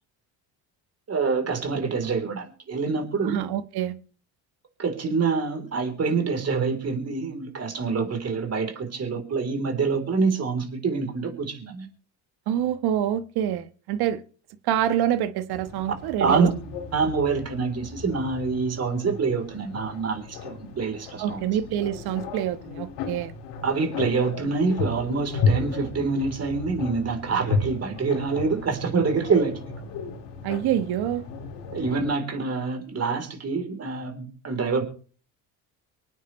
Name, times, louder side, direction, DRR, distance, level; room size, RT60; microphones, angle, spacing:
voice 1, 1.1-3.4 4.8-11.9 16.2-16.5 16.9-21.4 23.6-29.8 31.7-34.8, right 4 dB, 40° right, 3.7 m, -26 dB
voice 2, 3.2-3.9 12.5-14.2 14.6-16.5 21.2-23.3 30.4-31.2, right 11 dB, 70° right, 1.3 m, -26 dB
sound 1, 15.5-32.1, left 4 dB, 80° left, 3.6 m, -33 dB
25.0 x 9.1 x 3.2 m
supercardioid pair, 75°, 40 cm